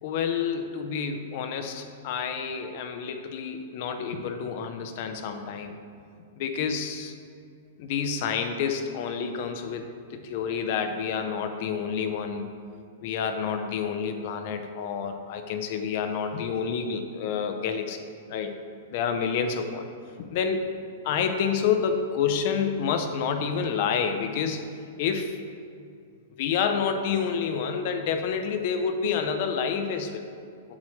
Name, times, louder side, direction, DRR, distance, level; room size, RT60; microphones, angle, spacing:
voice 1, 0.0-5.7 6.4-7.1 7.8-12.5 13.0-18.5 18.9-19.9 20.3-20.7 21.0-24.6 25.0-25.4 26.3-30.3, left 6 dB, 50° left, 6 dB, 0.7 m, -28 dB
7.4 x 7.4 x 3.2 m, 2.4 s
hypercardioid pair, 145°, 0 cm